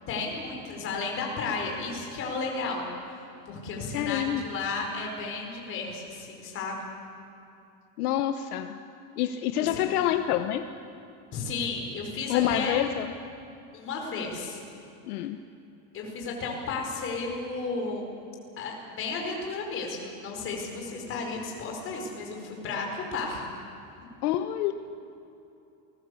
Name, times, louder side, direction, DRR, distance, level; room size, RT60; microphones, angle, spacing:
voice 1, 0.1-6.8 9.6-9.8 11.3-12.8 13.7-14.6 15.9-18.0 18.6-23.4, left 4 dB, 25° left, 0 dB, 4.9 m, -33 dB
voice 2, 3.9-4.4 8.0-8.8 9.2-10.7 12.3-13.1 15.1-15.4 24.2-24.7, left 12 dB, 65° left, 8 dB, 1.2 m, -27 dB
29.0 x 20.5 x 8.4 m, 2.7 s
supercardioid pair, 180°, 47 cm